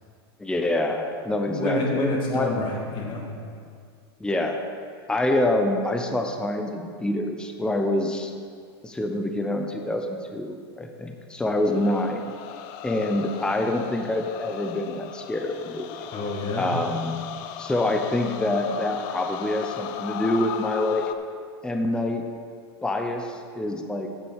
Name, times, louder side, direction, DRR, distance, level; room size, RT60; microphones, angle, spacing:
voice 1, 0.4-2.5 4.2-4.6 5.1-8.3 8.8-12.2 12.8-15.9 16.6-17.2 17.6-21.0 21.6-22.2 22.8-24.1, left 1 dB, 5° left, 4 dB, 0.7 m, -26 dB
voice 2, 1.5-3.3 16.1-16.7, left 2 dB, 35° left, -1 dB, 2.2 m, -28 dB
sound 1, 11.6-21.1, left 10 dB, 55° left, 0.6 m, -37 dB
8.7 x 6.8 x 6.5 m, 2.1 s
hypercardioid pair, 120°, 14 cm